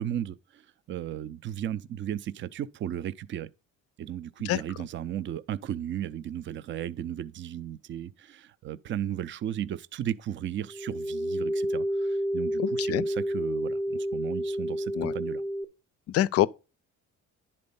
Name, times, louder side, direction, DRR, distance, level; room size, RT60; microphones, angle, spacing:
voice 1, 0.0-3.5 4.0-15.4, right 10 dB, 40° right, 0.5 m, -35 dB
sound 1, 10.7-15.6, equal, ahead, 0.7 m, -30 dB
voice 2, 12.6-13.0 14.9-15.1 16.1-16.5, left 13 dB, 50° left, 0.4 m, -25 dB
10.5 x 4.3 x 5.3 m
cardioid pair, 155°, 30 cm